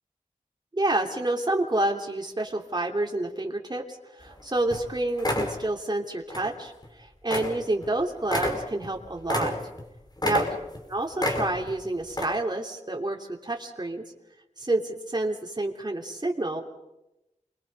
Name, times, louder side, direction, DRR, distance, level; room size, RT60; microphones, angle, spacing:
voice 1, 0.7-9.6 10.2-10.5 10.9-14.0 14.6-16.6, right 2 dB, 30° right, 1 dB, 3.0 m, -29 dB
sound 1, 4.3-4.4 4.7-4.9 5.2-5.6 6.3-6.5 6.8-6.9 7.3-7.6 7.8-7.9 8.2-9.9 10.2-10.8 11.2-11.7 12.1-12.2, left 1 dB, 30° left, 5.0 m, -28 dB
29.0 x 23.0 x 5.4 m, 0.92 s
wide cardioid pair, 65°, 13 cm